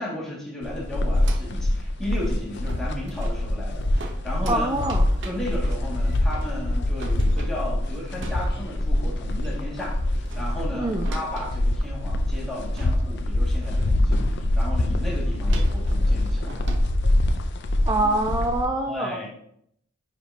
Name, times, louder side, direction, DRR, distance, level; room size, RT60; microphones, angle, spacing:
voice 1, 0.0-4.7 5.2-16.7 18.9-19.3, left 1 dB, ahead, -6 dB, 2.2 m, -34 dB
sound 1, 0.6-18.6, left 1 dB, 55° left, 0.6 m, -24 dB
sound 2, 1.0-1.7 2.0-2.2 2.5-8.9 9.2-9.5 9.8-12.0 12.4-12.5 12.7-13.3 13.6-14.3 15.5-17.0, right 2 dB, 60° right, 0.9 m, -42 dB
voice 2, 4.5-5.0 10.7-11.1 17.9-19.2, right 2 dB, 20° right, 5 dB, 0.4 m, -25 dB
9.6 x 5.0 x 2.9 m, 0.71 s
head